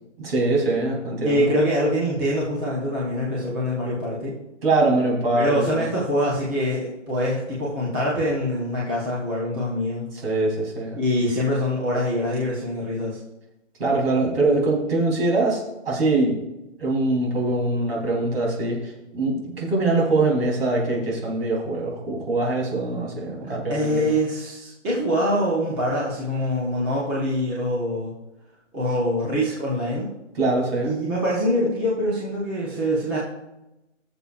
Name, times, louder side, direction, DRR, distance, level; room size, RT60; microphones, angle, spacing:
voice 1, 0.2-1.5 4.6-5.8 10.2-11.0 13.8-16.3 16.8-18.8 19.1-24.1 30.4-31.0, right 2 dB, 50° right, -2 dB, 3.6 m, -23 dB
voice 2, 1.2-4.4 5.3-10.0 11.0-13.2 23.4-28.1 28.7-30.1 30.8-33.2, equal, 10° right, -7 dB, 0.8 m, -24 dB
19.0 x 6.8 x 2.5 m, 0.94 s
hypercardioid pair, 170°, 37 cm